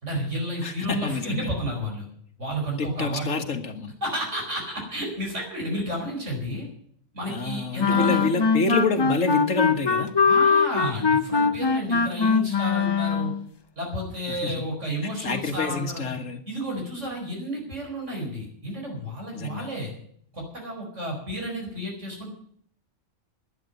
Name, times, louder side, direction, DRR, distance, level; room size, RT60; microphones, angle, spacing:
voice 1, 0.0-2.1 2.4-3.4 4.0-6.7 7.1-8.3 10.2-13.3 13.8-16.0 16.5-19.9 20.3-22.3, equal, 70° right, 0 dB, 5.1 m, -31 dB
voice 2, 0.6-1.5 2.8-3.9 7.2-10.1 14.3-14.6 15.2-16.4 19.3-19.7, left 4 dB, 85° left, 6 dB, 1.9 m, -28 dB
sound 1, 7.8-13.4, left 5 dB, 35° left, 0.4 m, -22 dB
11.0 x 10.5 x 9.0 m, 0.64 s
omnidirectional pair, 1.3 m